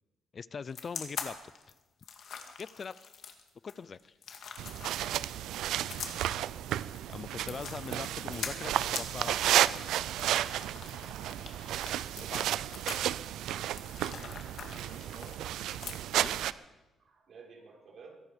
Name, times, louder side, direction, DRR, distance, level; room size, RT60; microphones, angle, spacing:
voice 1, 0.3-1.4 2.6-2.9 3.6-4.1 7.1-10.3 12.3-12.5 16.1-16.4, left 5 dB, 45° left, 20 dB, 0.4 m, -42 dB
sound 1, 0.7-16.4, left 6 dB, 65° left, 2.1 m, -44 dB
sound 2, 4.6-16.5, right 12 dB, 85° right, 0.5 m, -32 dB
voice 2, 12.1-13.2 14.6-15.4 17.0-18.2, right 4 dB, 55° right, -1 dB, 5.3 m, -53 dB
22.5 x 11.0 x 5.2 m, 1.1 s
cardioid pair, 90°, 0 cm